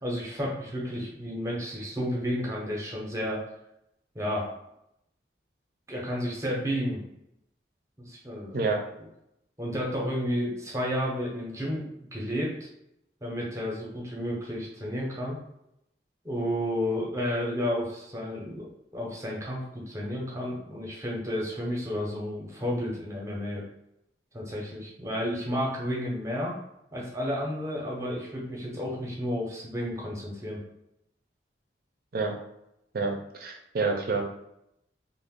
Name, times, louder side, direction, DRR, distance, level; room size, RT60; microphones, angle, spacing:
voice 1, 0.0-3.4 4.1-4.5 5.9-7.0 8.0-8.6 9.6-12.7 13.2-15.4 16.2-23.6 24.3-26.6 26.9-30.6, equal, 15° right, -3 dB, 0.7 m, -31 dB
voice 2, 32.9-34.2, right 4 dB, 55° right, 2 dB, 0.5 m, -28 dB
2.5 x 2.1 x 3.5 m, 0.81 s
head